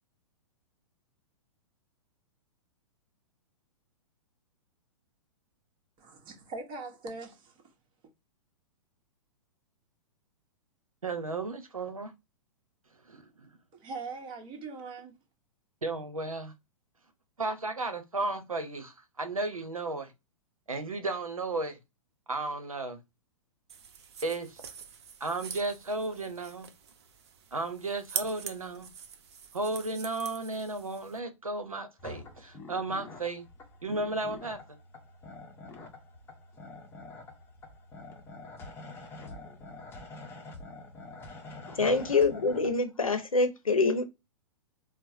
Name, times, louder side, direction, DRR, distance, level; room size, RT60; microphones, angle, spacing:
voice 1, 6.0-7.6 13.7-15.2, right 3 dB, 30° right, 1.2 m, -41 dB
voice 2, 11.0-12.1 13.0-13.5 15.8-16.5 17.4-20.1 20.7-21.8 22.3-23.0 24.2-24.6 25.2-26.7 27.5-28.9 29.5-33.5 33.8-34.6 41.7-41.9, right 2 dB, 85° right, 0.8 m, -34 dB
sound 1, 23.7-31.2, right 7 dB, 55° right, 0.7 m, -43 dB
sound 2, 32.0-42.7, left 3 dB, 15° left, 0.8 m, -46 dB
voice 3, 41.7-44.0, left 3 dB, 80° left, 0.8 m, -25 dB
4.5 x 2.0 x 2.7 m
figure-of-eight pair, 110°, 17 cm